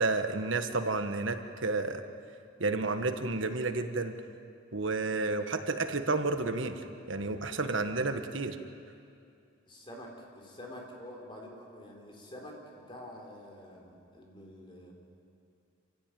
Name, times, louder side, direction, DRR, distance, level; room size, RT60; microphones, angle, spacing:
voice 1, 0.0-2.0 2.6-4.2 4.7-8.6, right 3 dB, 75° right, 7 dB, 1.4 m, -31 dB
voice 2, 9.7-14.9, left 1 dB, 25° left, 0 dB, 3.9 m, -47 dB
26.5 x 15.5 x 9.2 m, 2.5 s
head